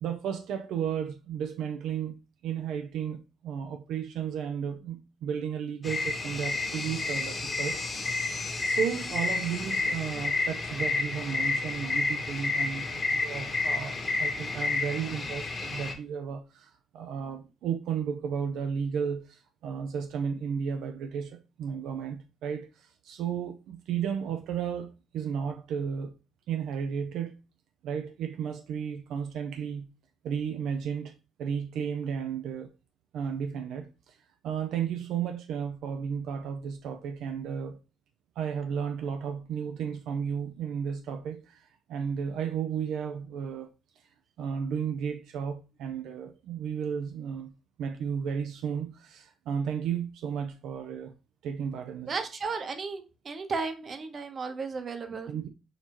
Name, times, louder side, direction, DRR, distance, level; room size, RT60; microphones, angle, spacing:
voice 1, 0.0-7.8 8.6-26.1 26.5-27.3 27.8-29.9 30.2-31.1 31.4-32.7 33.1-34.2 34.4-37.8 38.4-43.7 44.4-47.5 47.8-51.1 51.4-52.2 55.3-55.5, right 7 dB, 85° right, 0.4 m, -33 dB
sound 1, 5.8-15.9, left 3 dB, 35° left, 1.2 m, -30 dB
voice 2, 52.1-55.4, right 4 dB, 45° right, 0.9 m, -34 dB
6.5 x 2.7 x 2.9 m
cardioid pair, 90°, 0 cm